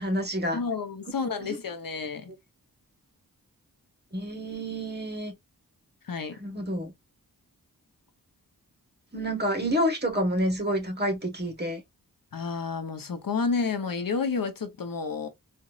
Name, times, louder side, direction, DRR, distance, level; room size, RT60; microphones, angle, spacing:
voice 1, 0.0-0.6 1.4-1.6 4.1-5.3 6.4-6.9 9.1-11.8, equal, 30° right, 1.4 m, -28 dB
voice 2, 0.5-2.3 6.0-6.4 12.3-15.3, left 5 dB, 65° left, 0.9 m, -30 dB
4.2 x 2.6 x 2.4 m
wide cardioid pair, 55°, 36 cm